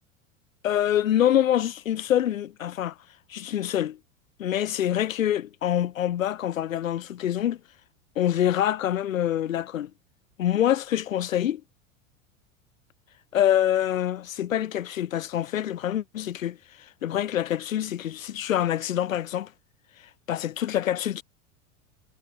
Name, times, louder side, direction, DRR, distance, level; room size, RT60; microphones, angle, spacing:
voice 1, 0.6-2.9 3.3-4.0 4.4-7.6 8.2-9.9 10.4-11.6 13.3-16.6 17.0-19.5 20.3-21.2, left 11 dB, 80° left, 5.3 m, -25 dB
hypercardioid pair, 95°, 39 cm